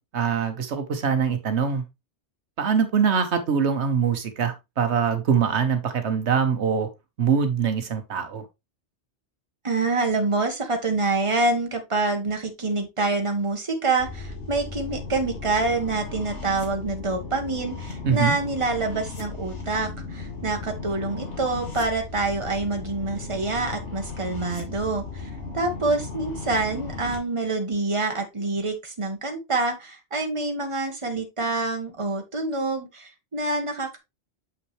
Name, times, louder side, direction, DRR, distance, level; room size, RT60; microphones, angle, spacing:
voice 1, 0.1-1.8 2.6-6.9 7.2-8.4 18.0-18.3, right 6 dB, 75° right, 8 dB, 1.2 m, -23 dB
voice 2, 9.6-25.3 25.5-34.0, right 3 dB, 25° right, 4 dB, 1.4 m, -26 dB
sound 1, 14.0-27.2, left 4 dB, 80° left, 2.4 m, -36 dB
7.1 x 5.8 x 3.1 m, 0.22 s
omnidirectional pair, 1.2 m